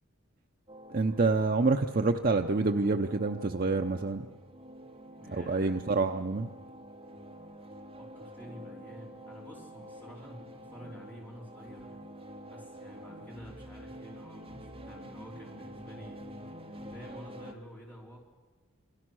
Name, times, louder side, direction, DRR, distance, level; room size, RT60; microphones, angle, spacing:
sound 1, 0.7-17.5, equal, 25° right, 2.1 m, -48 dB
voice 1, 0.9-4.3 5.3-6.5, right 3 dB, 45° right, 5 dB, 0.7 m, -27 dB
voice 2, 5.1-5.8 8.0-11.9 12.5-16.2 16.5-18.2, equal, 10° left, -3 dB, 3.4 m, -49 dB
28.0 x 20.5 x 6.3 m, 1.4 s
head